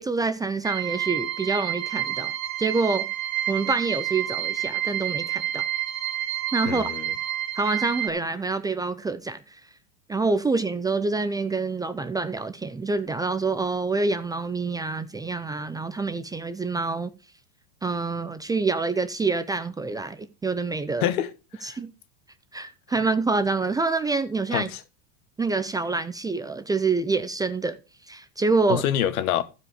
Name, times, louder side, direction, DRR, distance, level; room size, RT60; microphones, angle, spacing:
voice 1, 0.0-2.3 2.6-3.1 3.5-5.6 6.5-6.9 7.6-9.6 10.1-17.1 17.8-21.1 21.6-21.9 22.5-24.7 25.4-27.8 28.1-28.8, right 3 dB, 10° right, 0.5 m, -26 dB
sound 1, 0.6-8.1, right 13 dB, 65° right, 1.8 m, -29 dB
voice 2, 6.7-7.1 21.0-21.8 24.5-24.8 28.7-29.4, left 11 dB, 80° left, 1.3 m, -26 dB
14.5 x 5.1 x 4.8 m
supercardioid pair, 130°, 42 cm